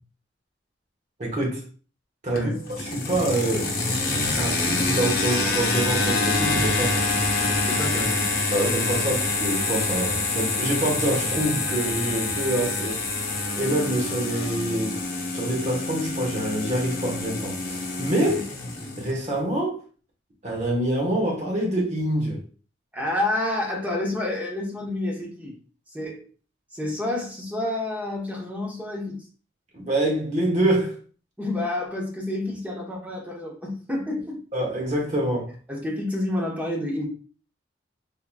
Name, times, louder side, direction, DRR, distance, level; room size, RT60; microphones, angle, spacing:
voice 1, 1.2-1.6 2.2-2.5 2.8-4.1 4.4-7.1 7.4-7.6 8.5-13.0 13.6-15.0 15.3-18.4 19.0-19.8 20.4-22.4 29.7-31.0 34.5-35.5, right 1 dB, 40° right, 1.1 m, -26 dB
voice 2, 2.3-2.6 7.7-8.2 18.2-18.4 22.9-25.6 25.9-26.3 26.7-29.2 31.4-34.4 35.7-37.1, left 1 dB, 10° right, 0.9 m, -29 dB
sound 1, 2.4-19.1, left 3 dB, 55° left, 0.8 m, -26 dB
3.6 x 3.0 x 2.2 m
head